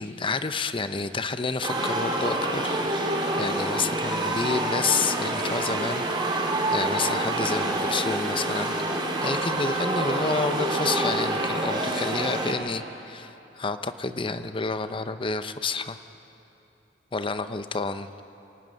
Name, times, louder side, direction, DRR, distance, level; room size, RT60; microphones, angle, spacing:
voice 1, 0.0-16.0 17.1-18.1, left 4 dB, 30° left, 11 dB, 0.7 m, -30 dB
sound 1, 1.6-12.5, right 2 dB, 25° right, 2.3 m, -27 dB
26.0 x 11.5 x 9.2 m, 3.0 s
head